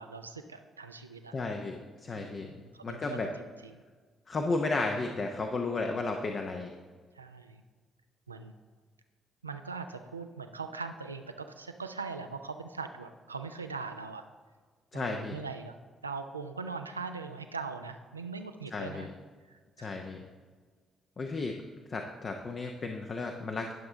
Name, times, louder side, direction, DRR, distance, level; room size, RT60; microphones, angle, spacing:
voice 1, 0.0-1.3 2.1-3.8 7.1-7.6 8.3-8.5 9.4-14.3 14.9-15.7 16.0-19.1 19.5-20.1, right 4 dB, 90° right, 7 dB, 0.4 m, -41 dB
voice 2, 1.3-3.3 4.3-6.7 14.9-15.4 18.7-19.1 19.8-20.2 21.2-21.5 21.9-23.7, left 3 dB, 45° left, 3 dB, 0.7 m, -33 dB
10.5 x 6.7 x 3.7 m, 1.5 s
figure-of-eight pair, 45°, 0 cm